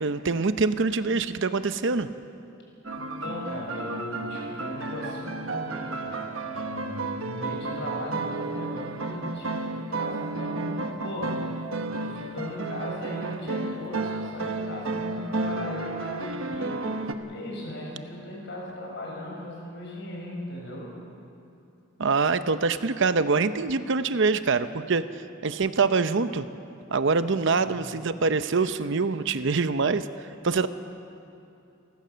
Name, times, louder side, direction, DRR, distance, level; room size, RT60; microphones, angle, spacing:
voice 1, 0.0-2.1 22.0-25.1 25.4-26.5 26.9-30.1 30.4-30.7, right 4 dB, 65° right, 12 dB, 0.7 m, -24 dB
sound 1, 2.8-17.1, right 3 dB, 85° right, 1.2 m, -32 dB
voice 2, 2.9-11.5 11.9-17.0 17.3-21.0 27.6-28.1, left 1 dB, 60° left, -1 dB, 6.0 m, -38 dB
29.0 x 14.5 x 6.9 m, 2.8 s
head